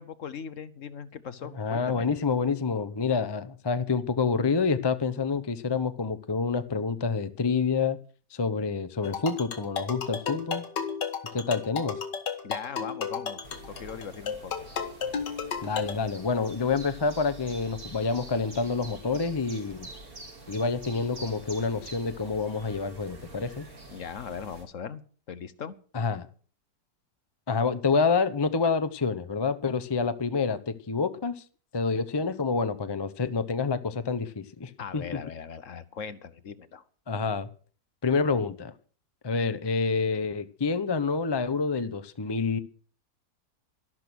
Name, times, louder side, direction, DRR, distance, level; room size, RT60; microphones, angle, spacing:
voice 1, 0.0-2.1 12.4-14.5 23.9-25.0 25.3-25.8 34.8-36.8, left 7 dB, 55° left, 14 dB, 1.1 m, -39 dB
voice 2, 1.4-8.0 8.3-10.6 11.3-12.0 15.6-19.9 20.5-23.7 25.9-26.3 27.5-31.4 31.7-35.2 37.1-37.5 38.0-38.7 39.2-42.6, left 4 dB, 25° left, 12 dB, 0.5 m, -28 dB
sound 1, 9.0-15.9, left 6 dB, 85° left, 2.2 m, -33 dB
sound 2, 13.4-24.6, right 2 dB, 60° right, 4.1 m, -46 dB
12.5 x 12.0 x 6.3 m, 0.42 s
omnidirectional pair, 1.8 m